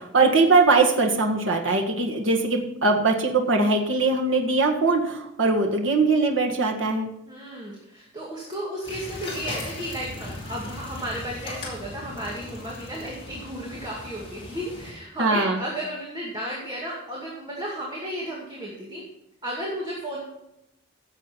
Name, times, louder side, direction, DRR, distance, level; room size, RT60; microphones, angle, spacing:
voice 1, 0.0-7.1 15.2-15.6, right 3 dB, 75° right, 1 dB, 1.6 m, -21 dB
voice 2, 7.3-19.0 19.4-20.2, equal, 20° right, -4 dB, 2.3 m, -33 dB
sound 1, 8.8-14.9, left 2 dB, 30° left, 4.5 m, -38 dB
16.0 x 7.4 x 4.5 m, 0.84 s
head